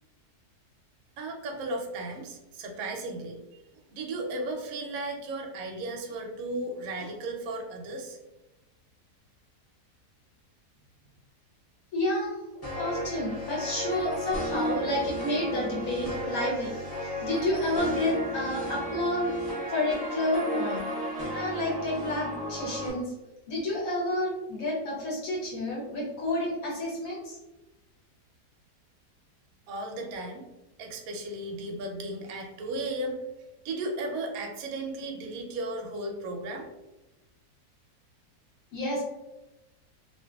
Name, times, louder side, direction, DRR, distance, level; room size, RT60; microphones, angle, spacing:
voice 1, 1.2-3.6 3.9-8.2 29.7-30.4 30.8-33.2 33.6-36.7, right 2 dB, 70° right, 2 dB, 0.9 m, -35 dB
voice 2, 11.9-12.4 12.7-19.4 19.7-20.9 21.3-23.1 23.5-27.4 38.7-39.0, left 1 dB, 60° left, -4 dB, 1.1 m, -30 dB
sound 1, 12.6-22.9, equal, 20° left, 0.6 m, -34 dB
2.7 x 2.6 x 2.3 m, 1.0 s
omnidirectional pair, 1.8 m